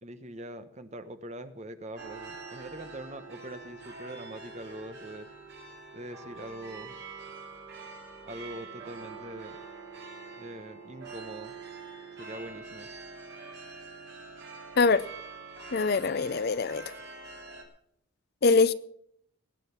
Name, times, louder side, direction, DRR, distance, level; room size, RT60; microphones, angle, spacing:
voice 1, 0.0-5.3 5.9-7.0 8.2-9.6 10.4-11.5 12.2-12.9, right 1 dB, 30° right, 1.0 m, -43 dB
sound 1, 2.0-17.6, right 4 dB, 50° right, 3.7 m, -45 dB
voice 2, 15.7-16.8 18.4-18.7, left 4 dB, 45° left, 0.5 m, -23 dB
21.5 x 8.9 x 5.7 m
head